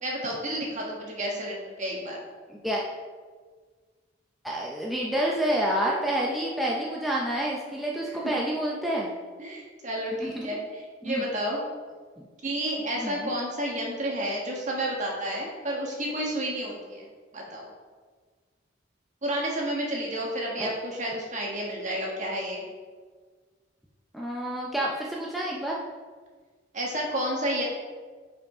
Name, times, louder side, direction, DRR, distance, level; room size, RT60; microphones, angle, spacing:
voice 1, 0.0-2.2 8.1-8.2 9.4-11.6 12.4-17.1 17.3-17.7 19.2-22.6 26.7-27.6, right 1 dB, 40° right, -2 dB, 1.5 m, -31 dB
voice 2, 2.5-2.8 4.4-9.1 10.2-10.5 11.0-11.2 12.2-12.3 12.9-13.3 20.6-20.7 24.1-25.8, right 1 dB, ahead, -4 dB, 0.6 m, -28 dB
5.7 x 5.0 x 4.8 m, 1.5 s
head